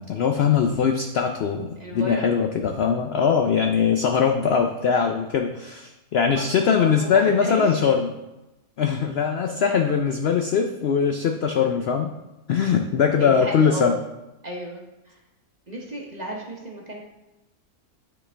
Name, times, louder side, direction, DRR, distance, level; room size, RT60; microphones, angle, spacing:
voice 1, 0.0-8.1 8.8-12.1 12.5-13.9, left 6 dB, 75° left, 4 dB, 0.5 m, -21 dB
voice 2, 1.8-2.3 2.6-2.8 6.3-7.9 13.2-14.0 14.4-15.2 15.7-17.0, equal, 35° right, -1 dB, 0.8 m, -33 dB
9.8 x 4.4 x 3.3 m, 0.98 s
omnidirectional pair, 1.6 m